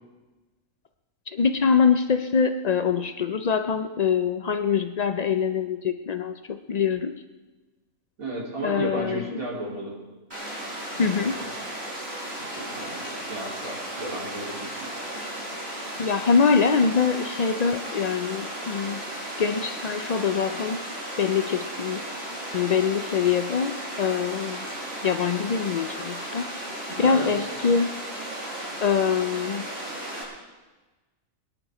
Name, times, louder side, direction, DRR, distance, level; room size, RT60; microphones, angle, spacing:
voice 1, 1.3-7.2 8.6-9.4 11.0-11.4 16.0-19.0 19.4-20.8 21.2-22.0 22.5-24.6 25.0-26.5 27.0-27.9 28.8-29.7, left 6 dB, 70° left, 8 dB, 0.4 m, -24 dB
voice 2, 8.2-10.0 10.9-11.5 12.4-14.9 26.9-27.3, right 1 dB, 80° right, -3 dB, 3.9 m, -34 dB
Water, 10.3-30.2, right 1 dB, 45° right, 5.4 m, -35 dB
23.0 x 10.0 x 5.0 m, 1.2 s
omnidirectional pair, 1.5 m